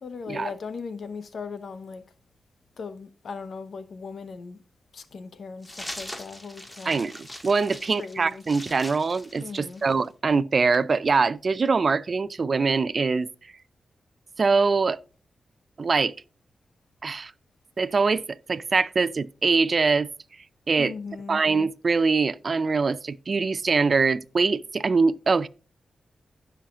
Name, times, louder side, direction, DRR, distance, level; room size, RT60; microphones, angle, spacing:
voice 1, 0.0-2.0 2.8-4.6 4.9-7.0 8.0-8.4 9.4-9.8 20.8-21.4, left 5 dB, 70° left, 1.0 m, -38 dB
sound 1, 5.6-10.1, left 1 dB, 15° left, 1.8 m, -41 dB
voice 2, 6.9-13.3 14.4-15.0 15.8-16.1 17.0-17.3 17.8-20.1 20.7-20.9 21.3-25.5, right 4 dB, 50° right, 0.4 m, -23 dB
16.5 x 5.7 x 2.5 m
cardioid pair, 85°, 0 cm